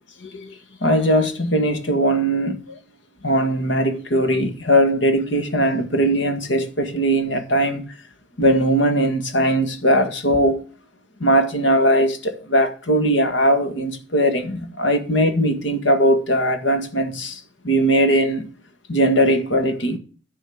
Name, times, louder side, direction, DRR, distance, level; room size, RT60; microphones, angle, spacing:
voice 1, 0.2-2.8 3.2-7.9 8.4-10.6 11.2-18.5 18.9-20.0, equal, 90° left, 1.8 m, -20 dB
11.5 x 4.4 x 7.1 m
head